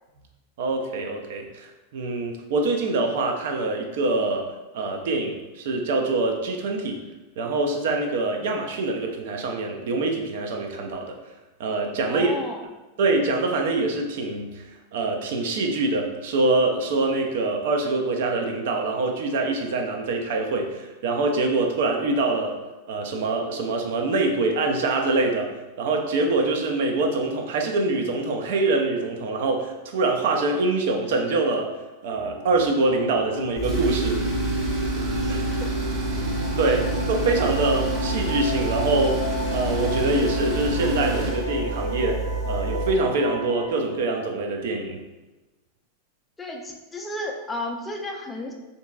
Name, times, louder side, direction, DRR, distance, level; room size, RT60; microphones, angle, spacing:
voice 1, 0.6-4.4 4.7-7.0 7.4-11.2 11.6-12.3 13.0-14.7 14.9-22.5 22.9-25.5 25.8-31.7 32.0-34.2 34.6-35.4 36.6-39.2 39.5-45.0, right 3 dB, 55° right, 2 dB, 0.4 m, -24 dB
voice 2, 12.1-12.6 35.2-35.3 35.6-35.7 46.4-48.5, left 1 dB, 15° left, 1 dB, 0.4 m, -33 dB
sound 1, 32.1-43.7, equal, 90° left, 0.4 m, -34 dB
Tools, 33.6-43.0, right 2 dB, 25° right, 0.8 m, -27 dB
3.6 x 2.6 x 2.3 m, 1.1 s
figure-of-eight pair, 90°, 0 cm